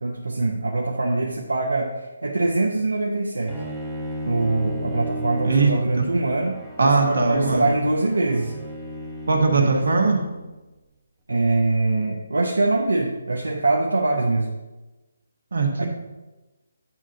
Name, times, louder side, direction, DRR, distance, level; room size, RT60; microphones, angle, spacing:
voice 1, 0.0-3.6 4.2-8.5 9.6-9.9 11.3-14.5 15.8-15.9, right 2 dB, 80° right, 0 dB, 0.8 m, -23 dB
Bowed string instrument, 3.5-10.5, equal, 5° right, 1.0 m, -35 dB
voice 2, 5.4-6.0 6.8-7.7 9.3-10.2 15.5-15.9, right 3 dB, 65° right, 2 dB, 1.4 m, -20 dB
8.9 x 3.8 x 5.5 m, 1.1 s
figure-of-eight pair, 150°, 0 cm